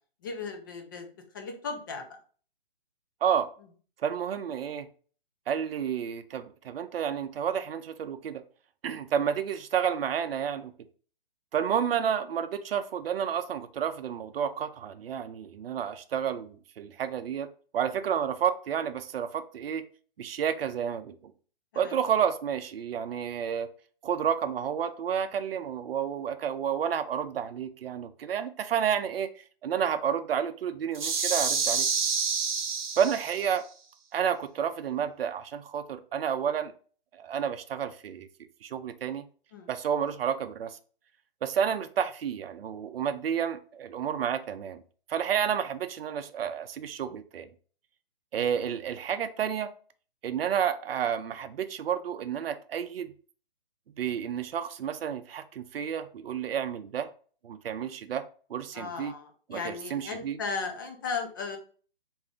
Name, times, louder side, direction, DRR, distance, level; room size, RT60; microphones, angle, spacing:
voice 1, 0.2-1.1 1.3-2.1 21.7-22.0 39.5-39.7 58.7-61.6, left 4 dB, 20° left, 4 dB, 0.4 m, -36 dB
voice 2, 4.0-4.9 5.5-8.4 8.8-10.7 11.5-19.8 20.2-21.3 21.8-23.7 24.0-31.9 33.0-33.6 34.1-36.7 37.1-38.3 38.6-39.2 39.7-40.8 41.4-44.8 45.1-47.5 48.3-49.7 50.2-53.1 54.0-57.1 57.4-58.2 58.5-59.1 59.5-60.4, right 8 dB, 70° right, 10 dB, 0.5 m, -30 dB
sound 1, 30.9-33.5, right 5 dB, 50° right, 0.9 m, -28 dB
3.7 x 2.6 x 3.4 m, 0.42 s
hypercardioid pair, 150°, 30 cm